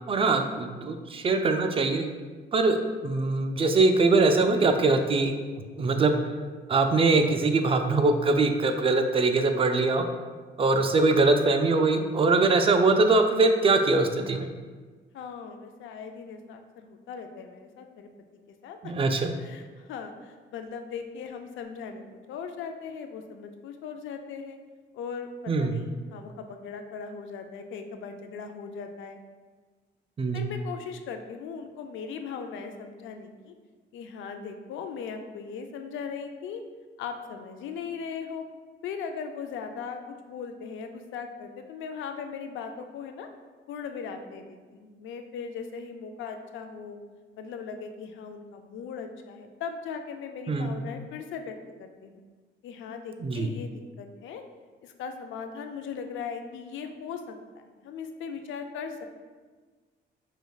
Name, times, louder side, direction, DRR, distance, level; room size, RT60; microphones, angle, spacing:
voice 1, 0.1-2.1 2.5-5.3 5.8-6.2 6.7-10.1 10.6-14.5 18.8-19.3 25.5-25.7 30.2-30.5 50.5-50.8 53.2-53.5, right 3 dB, 30° right, 6 dB, 0.4 m, -22 dB
voice 2, 15.1-18.1 18.6-18.9 19.2-24.6 24.9-29.2 30.3-33.5 33.9-36.6 37.0-38.4 38.8-40.0 40.2-43.3 43.7-47.0 47.4-52.2 52.6-54.4 54.8-57.4 57.8-59.0, left 6 dB, 75° left, 6 dB, 0.4 m, -38 dB
5.1 x 3.0 x 2.3 m, 1.4 s
cardioid pair, 90°, 20 cm